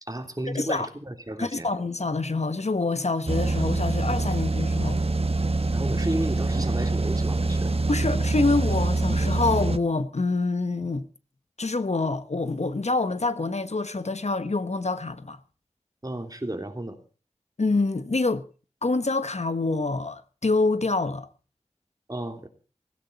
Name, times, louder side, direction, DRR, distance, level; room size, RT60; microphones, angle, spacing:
voice 1, 0.0-1.7 5.7-7.7 16.0-17.0 22.1-22.5, right 1 dB, 30° right, 3.4 m, -33 dB
voice 2, 0.5-0.9 1.4-5.0 7.9-11.1 11.6-15.4 17.6-18.5 18.8-21.3, left 3 dB, 70° left, 1.2 m, -26 dB
sound 1, 3.3-9.8, right 2 dB, 55° right, 1.3 m, -25 dB
16.5 x 16.5 x 4.2 m
wide cardioid pair, 40°, 12 cm